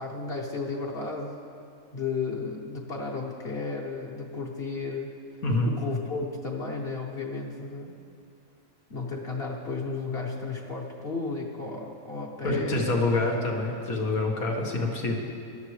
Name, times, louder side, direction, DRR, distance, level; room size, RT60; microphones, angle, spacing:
voice 1, 0.0-1.5 1.9-5.1 5.6-8.0 8.9-12.9, left 4 dB, 50° left, -2 dB, 1.1 m, -33 dB
voice 2, 5.4-5.8 12.4-15.1, left 2 dB, 85° left, -1 dB, 2.0 m, -26 dB
19.0 x 12.0 x 3.2 m, 2.5 s
omnidirectional pair, 1.5 m